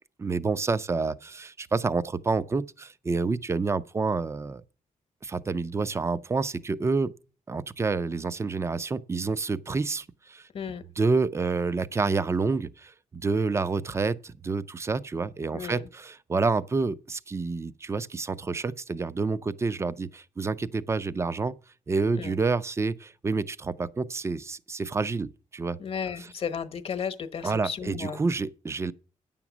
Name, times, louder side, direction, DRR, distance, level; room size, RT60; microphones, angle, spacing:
voice 1, 0.2-4.6 5.2-7.1 7.5-10.5 11.0-12.9 13.2-21.5 21.9-25.8 27.4-28.9, right 4 dB, 20° right, 0.5 m, -28 dB
voice 2, 15.5-15.9 22.1-22.3 25.8-28.2, left 7 dB, 50° left, 1.0 m, -34 dB
9.9 x 7.2 x 6.0 m
wide cardioid pair, 135°, 13 cm